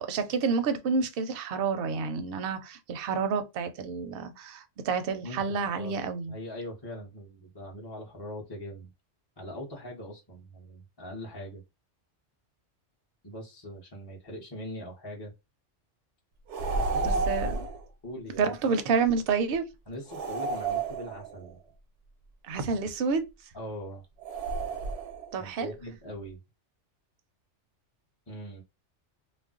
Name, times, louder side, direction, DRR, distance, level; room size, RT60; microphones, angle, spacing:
voice 1, 0.0-6.3 17.0-17.6 18.4-19.7 22.4-23.2 25.3-25.7, right 5 dB, 60° right, 0.7 m, -29 dB
voice 2, 5.2-6.0 6.3-8.9 9.4-11.6 13.2-15.3 16.7-17.2 18.0-18.5 19.9-21.6 23.5-24.0 25.4-26.4 28.3-28.6, equal, 25° left, 0.6 m, -41 dB
sound 1, 16.5-17.8 20.1-21.5 24.2-25.3, right 3 dB, 80° right, 0.9 m, -31 dB
2.4 x 2.0 x 3.6 m
omnidirectional pair, 1.2 m